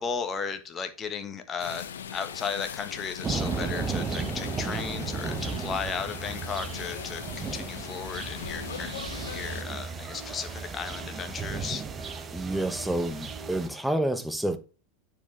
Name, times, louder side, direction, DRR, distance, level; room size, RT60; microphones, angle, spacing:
voice 1, 0.0-8.9 9.3-11.8, left 6 dB, 25° left, 1.3 m, -35 dB
sound 1, 1.6-9.6, left 8 dB, 70° left, 0.7 m, -40 dB
sound 2, 3.2-13.7, right 5 dB, 25° right, 0.9 m, -35 dB
sound 3, 8.4-13.5, right 5 dB, 90° right, 1.4 m, -49 dB
voice 2, 12.3-14.6, right 1 dB, 5° right, 1.1 m, -29 dB
9.6 x 4.9 x 3.3 m
figure-of-eight pair, 90°, 0 cm